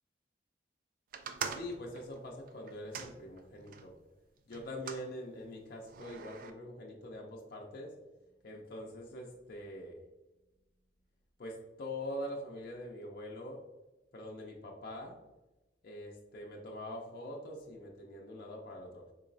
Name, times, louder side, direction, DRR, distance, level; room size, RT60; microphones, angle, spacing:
sound 1, 1.1-3.9 4.5-5.1 5.9-6.5, right 6 dB, 50° right, 0.3 m, -43 dB
voice 1, 1.4-3.9 4.5-8.0 8.4-10.0 11.4-13.6 14.1-15.1 15.8-19.1, left 1 dB, 60° left, -1 dB, 0.5 m, -44 dB
3.8 x 3.0 x 2.6 m, 1.0 s
head